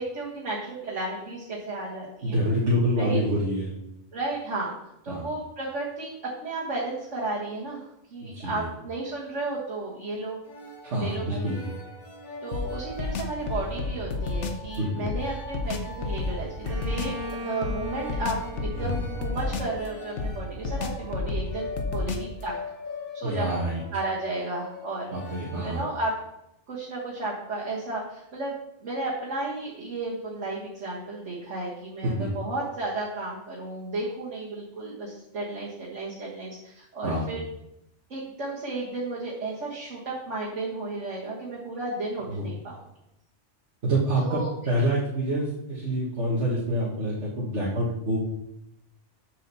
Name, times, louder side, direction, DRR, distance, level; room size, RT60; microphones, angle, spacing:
voice 1, 0.0-2.4 3.0-3.2 4.1-4.7 5.0-10.4 11.0-11.5 12.4-22.5 23.1-23.5 23.9-25.1 25.6-26.1 26.7-28.5 28.8-37.4 38.1-42.8 44.2-44.5, right 2 dB, 85° right, -5 dB, 2.0 m, -33 dB
voice 2, 2.2-3.7 5.1-5.3 8.2-8.7 10.8-11.6 14.8-15.1 18.8-18.9 23.2-23.8 25.1-25.8 32.0-32.3 37.0-37.3 42.3-42.5 43.8-48.2, right 1 dB, 70° right, -6 dB, 1.9 m, -27 dB
sound 1, 10.4-25.8, left 2 dB, 40° left, 1.8 m, -42 dB
sound 2, 12.5-14.7 15.1-17.2 17.6-19.9 20.2-22.4, left 3 dB, 75° left, 1.2 m, -31 dB
Bowed string instrument, 16.6-20.4, left 2 dB, 50° right, 1.2 m, -39 dB
7.8 x 4.9 x 6.8 m, 0.82 s
omnidirectional pair, 1.2 m